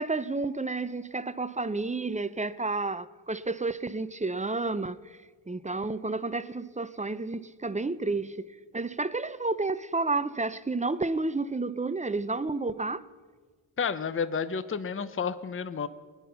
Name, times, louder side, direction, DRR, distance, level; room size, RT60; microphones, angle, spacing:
voice 1, 0.0-5.2 5.5-13.0, right 3 dB, 15° right, 0.4 m, -31 dB
voice 2, 13.8-15.9, left 6 dB, 25° left, 0.6 m, -31 dB
20.5 x 10.5 x 5.7 m
cardioid pair, 70°, 48 cm